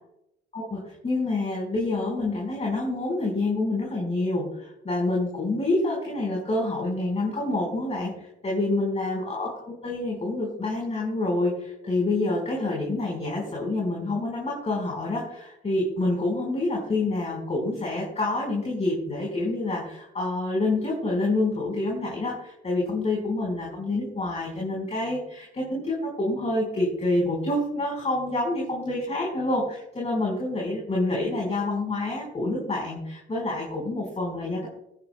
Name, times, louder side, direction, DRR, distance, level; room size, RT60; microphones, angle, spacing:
voice 1, 0.5-34.7, left 2 dB, 35° left, -3 dB, 4.7 m, -27 dB
23.5 x 10.0 x 2.3 m, 0.84 s
cardioid pair, 90°, 20 cm